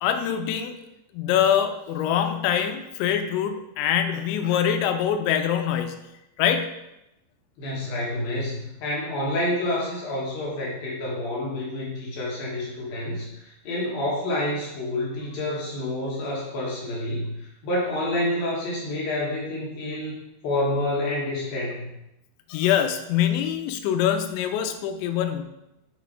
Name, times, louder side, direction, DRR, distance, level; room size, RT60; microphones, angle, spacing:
voice 1, 0.0-0.7 1.1-6.0 6.4-6.7 22.5-25.4, left 9 dB, 80° left, 7 dB, 2.8 m, -24 dB
voice 2, 7.6-20.2 20.4-21.9, left 1 dB, 65° left, -5 dB, 2.5 m, -28 dB
7.5 x 4.1 x 4.6 m, 0.89 s
omnidirectional pair, 5.6 m